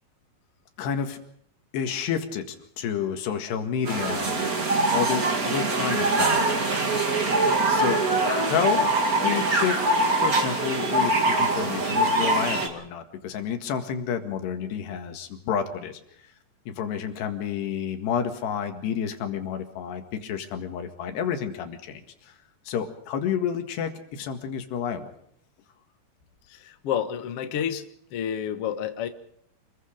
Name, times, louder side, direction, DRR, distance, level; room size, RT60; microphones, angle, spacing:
voice 1, 0.8-1.2 1.7-2.5 2.8-4.6 4.9-6.6 7.7-8.8 9.2-9.8 10.1-16.0 16.7-22.3 22.7-25.1, left 8 dB, 85° left, 6 dB, 4.0 m, -30 dB
sound 1, 3.9-12.7, right 2 dB, 30° right, 2.0 m, -23 dB
voice 2, 26.5-27.8 28.1-29.1, left 9 dB, 60° left, 8 dB, 1.5 m, -29 dB
28.0 x 21.5 x 5.2 m, 0.71 s
omnidirectional pair, 4.7 m